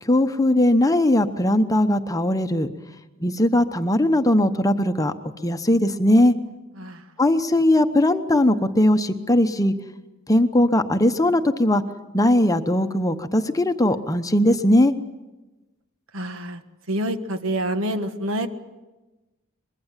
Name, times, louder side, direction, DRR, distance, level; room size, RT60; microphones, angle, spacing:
voice 1, 0.0-2.7 3.2-5.1 5.4-6.3 7.2-9.7 10.3-11.8 12.1-14.9, left 1 dB, 15° left, 8 dB, 0.9 m, -19 dB
voice 2, 16.1-16.6 16.9-18.5, right 1 dB, 65° right, 8 dB, 1.6 m, -27 dB
24.5 x 21.5 x 7.4 m, 1.1 s
head